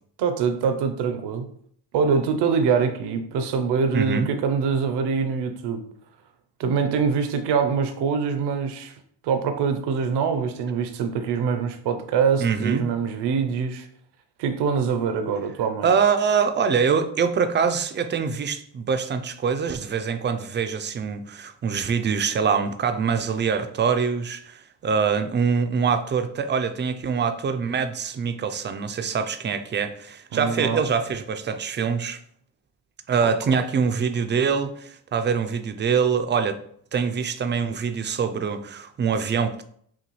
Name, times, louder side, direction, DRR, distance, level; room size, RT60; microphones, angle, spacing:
voice 1, 0.2-1.5 1.9-5.8 6.6-8.9 9.2-13.9 14.4-15.9 30.3-30.8 33.2-33.3, right 6 dB, 70° right, 0.7 m, -24 dB
voice 2, 3.9-4.3 12.4-12.9 15.8-32.2 33.1-36.6 36.9-39.6, right 6 dB, 25° right, 0.4 m, -24 dB
5.8 x 2.3 x 3.1 m
cardioid pair, 105°, 43 cm